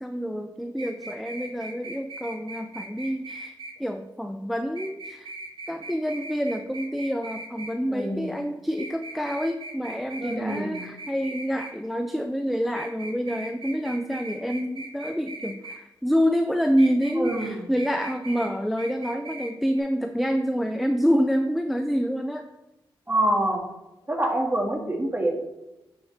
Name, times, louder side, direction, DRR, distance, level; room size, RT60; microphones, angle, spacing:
voice 1, 0.0-3.5 3.8-5.3 5.7-22.4, equal, ahead, 7 dB, 0.4 m, -27 dB
sound 1, 0.8-3.7 4.8-7.7 8.8-11.7 12.7-15.8 16.8-17.5 17.8-18.5 18.8-19.5 19.8-19.9, right 2 dB, 60° right, 1.2 m, -39 dB
voice 2, 7.9-8.4 10.2-10.8 17.2-17.7 23.1-23.6 24.1-25.4, right 1 dB, 20° right, 1 dB, 1.8 m, -26 dB
10.5 x 4.3 x 3.3 m, 0.96 s
cardioid pair, 50°, 10 cm